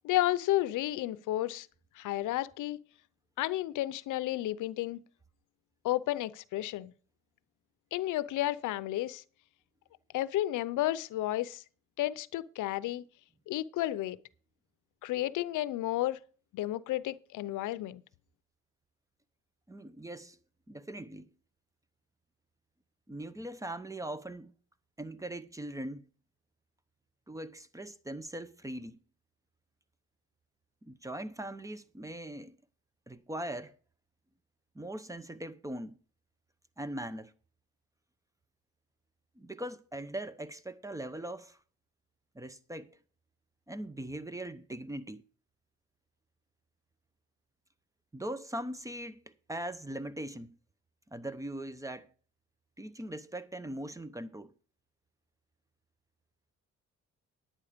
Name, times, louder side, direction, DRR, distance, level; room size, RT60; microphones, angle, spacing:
voice 1, 0.0-1.7 2.0-2.8 3.4-5.0 5.8-6.9 7.9-9.2 10.1-11.6 12.0-13.0 13.5-14.2 15.0-16.2 16.5-18.0, left 15 dB, 80° left, 0.7 m, -32 dB
voice 2, 19.7-20.4 20.7-21.3 23.1-24.5 25.0-26.0 27.3-28.9 30.8-32.6 33.1-33.7 34.7-36.0 36.8-37.3 39.4-41.6 42.3-42.9 43.7-45.2 48.1-49.2 49.5-50.6 51.1-52.1 52.8-54.5, right 1 dB, 10° right, 0.8 m, -40 dB
10.5 x 8.7 x 5.1 m
cardioid pair, 90°, 30 cm